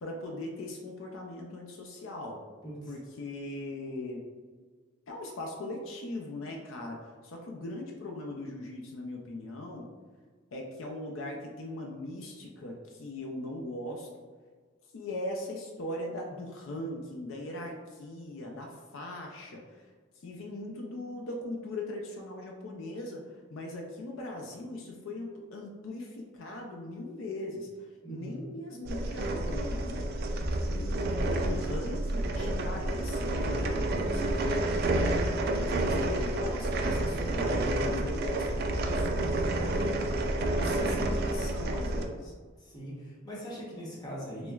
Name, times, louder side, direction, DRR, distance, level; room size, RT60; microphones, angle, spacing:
voice 1, 0.0-2.4 2.9-4.2 5.1-9.9 10.5-14.1 14.9-19.8 20.1-23.2 23.5-30.1 30.7-39.7 40.5-42.3, left 1 dB, 70° left, 0 dB, 0.5 m, -40 dB
voice 2, 2.6-3.0 28.0-28.4 42.6-44.5, equal, 20° left, -6 dB, 0.9 m, -41 dB
sound 1, 28.8-42.0, right 1 dB, 50° right, 0.3 m, -29 dB
6.0 x 2.1 x 2.3 m, 1.5 s
head